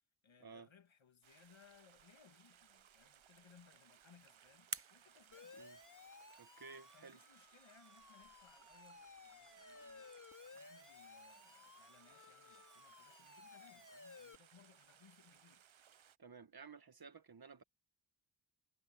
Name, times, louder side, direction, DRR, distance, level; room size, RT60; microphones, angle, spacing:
voice 1, 0.2-5.6 6.9-15.7, left 6 dB, 75° left, 2.4 m, -67 dB
Stream, 1.2-16.2, right 9 dB, 80° right, 0.9 m, -66 dB
sound 1, 3.6-6.3, right 4 dB, 30° right, 1.0 m, -51 dB
Siren, 5.3-14.4, left 3 dB, 40° left, 3.3 m, -58 dB
voice 2, 6.4-7.2 16.2-17.6, right 5 dB, 50° right, 1.5 m, -55 dB
wide cardioid pair, 80°, 47 cm